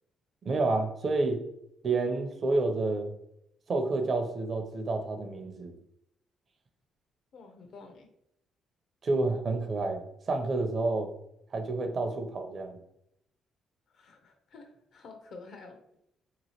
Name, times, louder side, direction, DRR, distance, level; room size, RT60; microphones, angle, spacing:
voice 1, 0.4-1.4 1.8-3.1 3.7-5.8 9.0-10.0 10.3-11.1 11.5-12.8, right 3 dB, 45° right, 5 dB, 0.5 m, -29 dB
voice 2, 7.3-8.1 13.9-15.8, left 3 dB, 65° left, 5 dB, 0.6 m, -49 dB
2.9 x 2.5 x 2.8 m, 0.78 s
cardioid pair, 75°, 0 cm